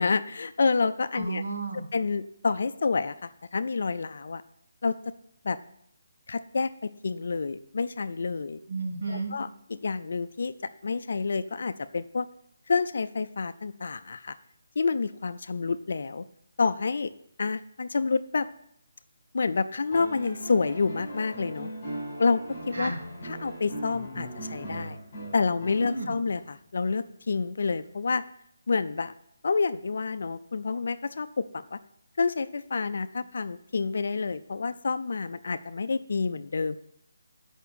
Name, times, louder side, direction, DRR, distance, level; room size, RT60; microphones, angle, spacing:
voice 1, 0.0-1.4 1.9-4.4 4.8-5.1 5.4-5.6 6.3-8.6 9.1-9.5 9.8-10.5 10.8-12.3 12.7-14.4 14.8-16.3 16.6-17.1 17.4-18.5 19.3-21.7 22.2-22.4 22.7-22.9 23.2-25.0 25.3-28.2 28.7-29.1 29.4-31.8 32.2-36.8, left 4 dB, 45° left, 12 dB, 0.4 m, -28 dB
voice 2, 1.1-1.8 8.7-9.3 22.7-23.0 25.8-26.1, right 3 dB, 55° right, -2 dB, 3.2 m, -32 dB
sound 1, 19.9-26.3 27.8-27.9, right 1 dB, 20° left, 4.0 m, -39 dB
8.2 x 5.8 x 6.9 m, 0.71 s
hypercardioid pair, 180°, 0 cm